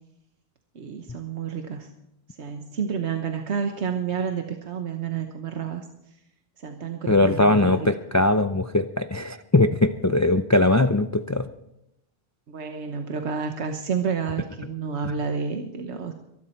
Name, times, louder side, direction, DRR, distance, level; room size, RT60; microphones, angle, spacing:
voice 1, 0.7-1.9 2.4-5.8 6.6-7.9 12.5-16.1, right 6 dB, 90° right, 5 dB, 1.4 m, -30 dB
voice 2, 7.1-11.5, left 2 dB, 25° left, 10 dB, 0.4 m, -20 dB
23.0 x 12.0 x 4.4 m, 0.85 s
omnidirectional pair, 1.1 m